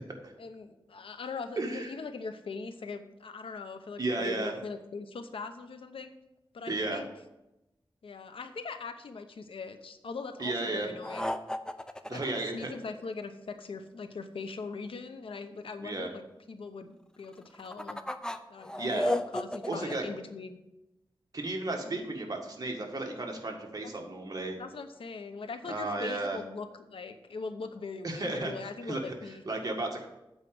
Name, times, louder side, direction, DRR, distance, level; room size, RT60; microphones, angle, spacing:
voice 1, 0.4-6.1 6.5-7.1 8.0-11.3 12.1-18.0 18.5-20.6 21.8-22.0 23.8-24.1 24.6-29.4, left 4 dB, 90° left, 8 dB, 0.8 m, -41 dB
voice 2, 1.6-1.9 4.0-4.6 6.7-7.0 10.4-10.9 12.1-12.7 15.8-16.1 18.8-19.0 19.7-20.1 21.3-24.6 25.7-26.4 28.0-29.2 29.5-30.1, right 2 dB, 45° right, 1 dB, 1.8 m, -33 dB
sound 1, 11.0-13.2 17.3-19.9, left 1 dB, 10° left, 0.6 m, -34 dB
8.1 x 5.1 x 7.5 m, 0.92 s
wide cardioid pair, 85°, 9 cm